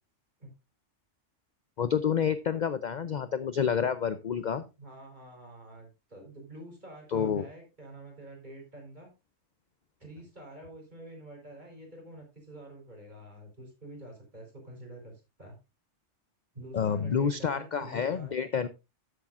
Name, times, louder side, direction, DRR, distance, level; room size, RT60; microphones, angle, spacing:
voice 1, 1.8-4.6 7.1-7.5 16.7-18.7, left 7 dB, 50° left, 12 dB, 0.6 m, -29 dB
voice 2, 4.8-9.1 10.0-15.6 16.5-18.4, right 1 dB, 35° right, 0 dB, 4.5 m, -47 dB
13.0 x 8.4 x 2.5 m, 0.26 s
omnidirectional pair, 1.3 m